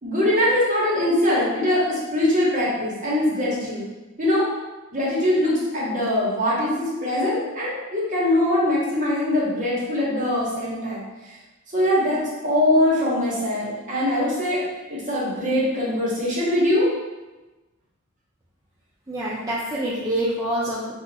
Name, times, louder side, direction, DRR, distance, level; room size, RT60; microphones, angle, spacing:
voice 1, 0.0-3.8 4.2-4.5 4.9-11.0 11.7-14.6 14.9-16.9, left 1 dB, 40° right, -7 dB, 1.1 m, -22 dB
voice 2, 19.1-20.9, right 1 dB, 15° right, -8 dB, 0.4 m, -26 dB
2.8 x 2.4 x 4.0 m, 1.1 s
head